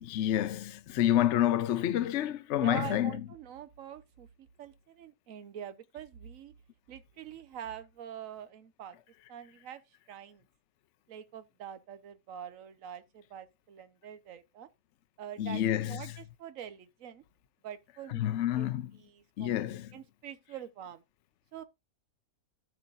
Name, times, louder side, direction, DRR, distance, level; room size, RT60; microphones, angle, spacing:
voice 1, 0.0-3.1 15.4-16.0 18.1-18.9 19.4-19.9, left 12 dB, 65° left, 0.8 m, -28 dB
voice 2, 2.5-6.5 6.9-9.0 9.3-9.8 10.1-10.5 11.1-14.7 15.2-17.2 17.6-18.7 19.0-21.0 21.5-21.6, right 9 dB, 60° right, 1.3 m, -45 dB
13.5 x 5.8 x 2.5 m
omnidirectional pair, 1.6 m